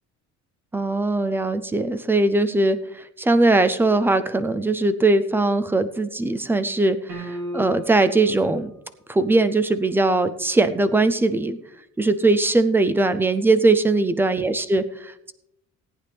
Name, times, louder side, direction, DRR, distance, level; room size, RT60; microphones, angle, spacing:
voice 1, 0.7-8.7 9.1-11.6 12.0-15.3, right 2 dB, 10° right, 11 dB, 0.3 m, -20 dB
sound 1, 7.1-8.2, equal, 75° right, 2.8 m, -33 dB
17.5 x 9.2 x 3.3 m, 0.80 s
cardioid pair, 175°, 30 cm